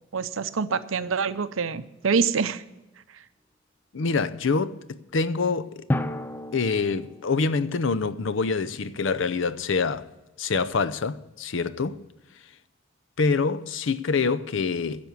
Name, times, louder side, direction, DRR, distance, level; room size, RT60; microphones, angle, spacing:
voice 1, 0.1-2.6, right 5 dB, 85° right, 0.7 m, -26 dB
voice 2, 3.9-5.9 6.5-10.1 10.4-12.0 13.2-15.1, left 4 dB, 70° left, 0.6 m, -26 dB
Drum, 5.9-8.2, left 1 dB, 10° left, 0.4 m, -31 dB
10.5 x 6.9 x 9.4 m
head